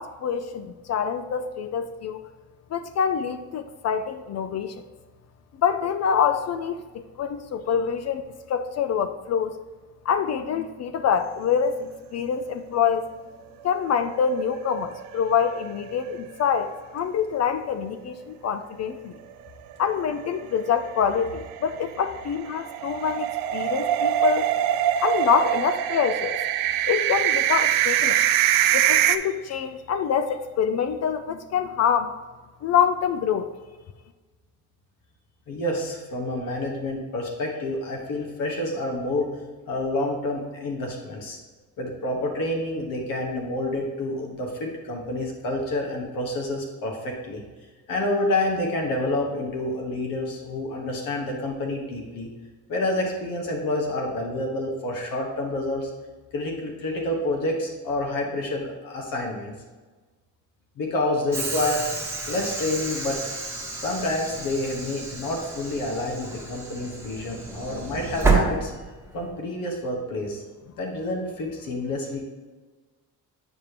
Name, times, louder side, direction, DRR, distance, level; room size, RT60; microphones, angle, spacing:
voice 1, 0.0-2.2 2.7-4.8 5.6-6.8 7.2-9.5 10.1-13.1 13.6-19.1 19.8-24.5 25.0-26.4 26.9-28.3 28.7-32.1 32.6-33.5, left 7 dB, 50° left, 9 dB, 0.4 m, -25 dB
sound 1, 14.2-15.1 15.5-15.6 15.9-16.0 20.1-29.2, right 11 dB, 75° right, 0.5 m, -23 dB
voice 2, 35.5-39.3 39.7-41.4 41.8-47.4 47.9-52.3 52.7-55.9 56.3-59.5 60.8-61.8 62.3-63.2 63.7-68.7 69.1-70.4 70.8-72.2, left 1 dB, 75° left, 0 dB, 1.4 m, -28 dB
Train / Sliding door, 61.3-69.3, right 3 dB, 5° right, 1.2 m, -29 dB
8.8 x 5.0 x 2.9 m, 1.3 s
cardioid pair, 120°, 34 cm